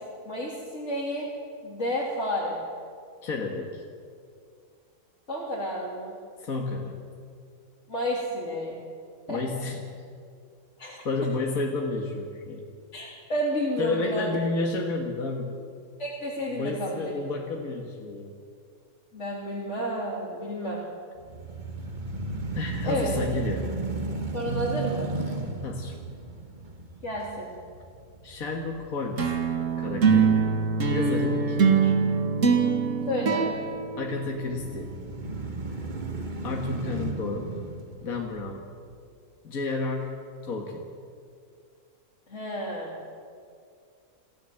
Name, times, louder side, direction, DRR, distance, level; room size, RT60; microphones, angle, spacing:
voice 1, 0.3-1.3 1.6-2.6 5.3-6.1 7.9-8.8 9.3-9.4 10.8-11.0 12.9-14.3 16.0-17.1 19.1-20.8 22.8-23.1 24.3-25.1 27.0-27.5 33.1-33.5 42.3-43.0, equal, 50° left, -6 dB, 3.8 m, -31 dB
voice 2, 3.2-3.8 6.4-7.0 9.3-9.9 11.0-12.7 13.8-15.6 16.5-18.3 22.5-23.7 25.2-26.0 28.2-29.4 29.8-32.0 34.0-34.9 36.4-37.5 38.0-38.6 39.4-40.8, left 3 dB, 70° left, 1 dB, 2.2 m, -31 dB
sound 1, 21.2-29.3 29.8-29.9 34.4-38.9, right 3 dB, 30° right, 1.7 m, -34 dB
sound 2, 29.2-34.8, right 5 dB, 55° right, 2.2 m, -23 dB
27.0 x 15.5 x 7.9 m, 2.3 s
omnidirectional pair, 1.6 m